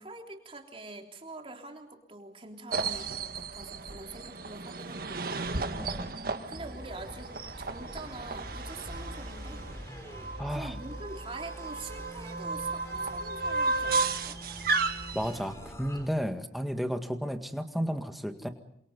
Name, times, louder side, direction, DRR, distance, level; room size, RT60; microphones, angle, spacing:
voice 1, 0.0-5.7 6.5-7.3 7.6-9.6 10.5-14.4, right 2 dB, 30° right, 3 dB, 3.5 m, -45 dB
sound 1, 2.7-15.4, right 3 dB, 55° right, 1.7 m, -34 dB
sound 2, 6.6-16.1, equal, 15° left, 3.9 m, -44 dB
voice 2, 10.4-10.7 15.1-18.5, equal, ahead, 6 dB, 1.9 m, -33 dB
29.0 x 26.5 x 5.4 m, 0.74 s
head